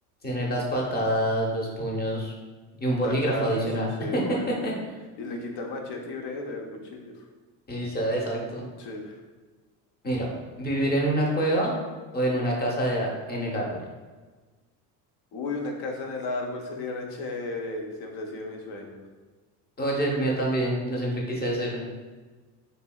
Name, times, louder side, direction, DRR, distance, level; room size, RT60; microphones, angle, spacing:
voice 1, 0.2-2.3 2.8-3.9 4.1-4.7 7.7-8.6 10.0-10.3 10.6-11.7 12.1-13.8 19.8-21.8, right 1 dB, 20° left, -2 dB, 0.8 m, -26 dB
voice 2, 3.0-3.7 4.0-4.5 5.2-7.1 8.8-9.2 15.3-19.0, left 2 dB, 50° left, 2 dB, 0.7 m, -34 dB
3.1 x 2.6 x 2.2 m, 1.3 s
hypercardioid pair, 70°, 48 cm